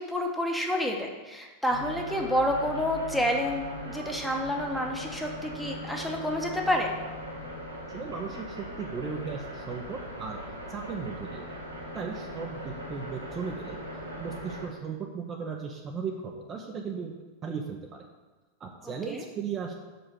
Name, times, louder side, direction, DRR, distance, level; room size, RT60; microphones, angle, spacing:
voice 1, 0.0-6.9 18.8-19.2, equal, ahead, 1 dB, 1.1 m, -29 dB
sound 1, 1.7-14.7, equal, 80° right, 1.9 m, -40 dB
voice 2, 7.9-10.4 10.7-11.5 11.9-13.8 14.2-17.1 17.4-18.1 18.6-19.7, right 5 dB, 25° right, 2 dB, 0.7 m, -36 dB
6.0 x 5.2 x 6.5 m, 1.2 s
figure-of-eight pair, 90°, 0 cm